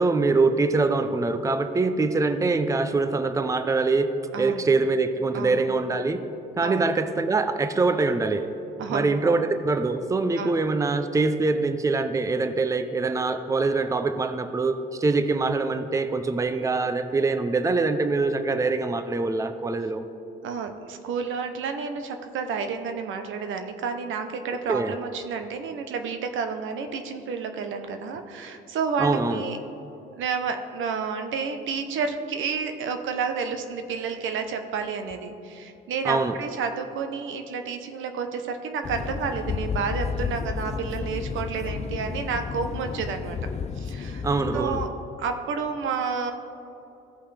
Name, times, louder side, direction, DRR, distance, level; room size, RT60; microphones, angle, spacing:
voice 1, 0.0-4.1 4.4-6.2 6.6-8.5 8.9-20.0 24.7-24.9 29.0-29.4 36.0-36.3 44.2-44.8, right 3 dB, 15° right, 9 dB, 0.5 m, -24 dB
voice 2, 4.3-4.7 5.3-5.7 6.6-6.9 8.8-9.4 10.4-10.6 20.4-29.6 30.2-43.4 43.8-44.3 44.5-44.9 45.2-46.3, right 5 dB, 80° right, 7 dB, 0.9 m, -30 dB
sound 1, 38.8-44.9, left 6 dB, 35° left, 0.4 m, -32 dB
15.5 x 5.5 x 3.4 m, 2.8 s
cardioid pair, 90°, 20 cm